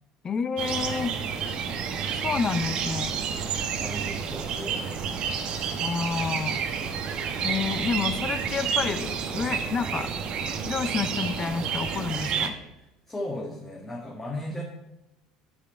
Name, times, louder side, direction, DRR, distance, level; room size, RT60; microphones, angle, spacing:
voice 1, 0.2-1.1 2.2-3.2 5.8-6.6 7.4-10.1 10.6-12.6, left 5 dB, 35° left, 13 dB, 0.6 m, -29 dB
sound 1, 0.6-12.5, right 6 dB, 45° right, 1.0 m, -30 dB
voice 2, 3.4-5.4 12.8-14.6, left 1 dB, 15° left, -2 dB, 1.6 m, -37 dB
8.4 x 5.2 x 5.8 m, 0.95 s
figure-of-eight pair, 65°, 2 cm